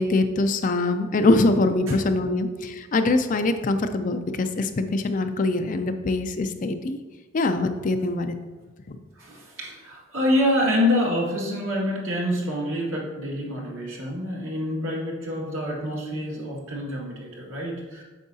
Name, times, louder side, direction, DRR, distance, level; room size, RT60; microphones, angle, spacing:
voice 1, 0.0-7.0 7.3-8.4 8.9-9.0, left 2 dB, 40° left, 8 dB, 0.4 m, -23 dB
voice 2, 9.2-18.0, left 1 dB, 80° right, -3 dB, 1.8 m, -26 dB
8.3 x 6.2 x 2.7 m, 1.3 s
head